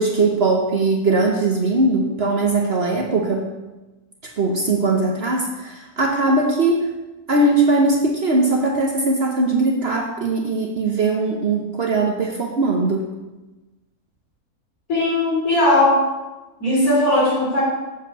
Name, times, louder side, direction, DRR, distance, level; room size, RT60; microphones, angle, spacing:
voice 1, 0.0-3.5 4.4-6.9 7.3-13.1, right 2 dB, 50° right, 1 dB, 0.9 m, -20 dB
voice 2, 14.9-16.0 16.6-17.6, left 1 dB, 65° left, -5 dB, 3.9 m, -18 dB
7.2 x 4.7 x 7.0 m, 1.1 s
omnidirectional pair, 1.6 m